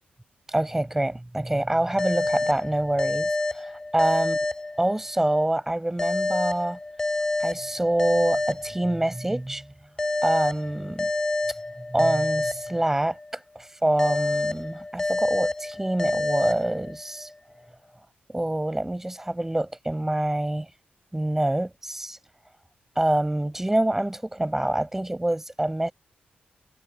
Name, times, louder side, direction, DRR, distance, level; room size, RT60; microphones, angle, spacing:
voice 1, 0.5-4.4 4.8-6.8 7.4-9.6 10.2-11.1 11.9-13.2 13.5-17.3 18.3-20.7 21.1-22.2 23.0-25.9, right 1 dB, 10° right, 6.1 m, -26 dB
sound 1, 2.0-5.3 6.0-9.3 10.0-13.3 14.0-17.3, left 2 dB, 20° left, 5.1 m, -28 dB
wide cardioid pair, 120°, 3 cm